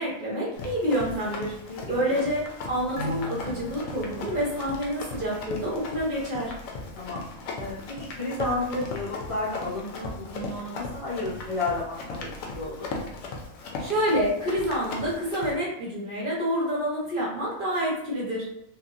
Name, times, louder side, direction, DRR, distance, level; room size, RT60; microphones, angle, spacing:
voice 1, 0.0-1.5 1.9-6.5 13.8-18.5, equal, 40° right, -6 dB, 0.9 m, -28 dB
Run, 0.5-15.5, left 3 dB, 75° left, 0.9 m, -38 dB
sound 1, 3.0-5.9 6.2-6.3, equal, 75° right, 1.1 m, -39 dB
voice 2, 7.6-12.9, left 2 dB, 50° left, -8 dB, 0.4 m, -32 dB
3.0 x 2.5 x 2.5 m, 0.78 s
omnidirectional pair, 1.5 m